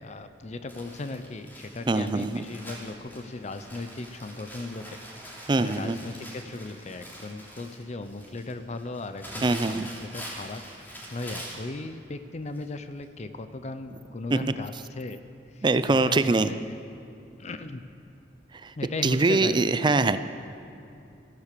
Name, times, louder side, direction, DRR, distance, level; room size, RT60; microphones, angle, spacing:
voice 1, 0.0-15.2 15.5-16.7 17.4-17.8 18.8-19.6, left 2 dB, 40° left, 10 dB, 0.6 m, -37 dB
Crumpling crinkling, 0.7-11.7 12.5-12.7 13.0-13.1, equal, 10° left, 3.0 m, -44 dB
voice 2, 1.9-2.4 5.5-6.0 9.4-9.9 14.3-14.4 15.6-16.5 18.6-18.7 19.0-20.2, right 3 dB, 25° right, 12 dB, 0.4 m, -23 dB
15.5 x 11.5 x 6.8 m, 2.8 s
head